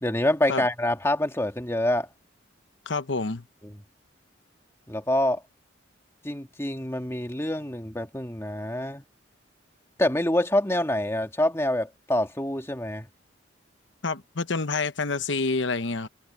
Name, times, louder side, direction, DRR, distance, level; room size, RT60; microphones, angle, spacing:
voice 1, 0.0-2.1 3.6-3.7 4.9-5.4 6.2-9.0 10.0-13.1, left 1 dB, 15° left, 1.7 m, -26 dB
voice 2, 2.9-3.4 14.0-16.1, left 3 dB, 70° left, 1.0 m, -28 dB
head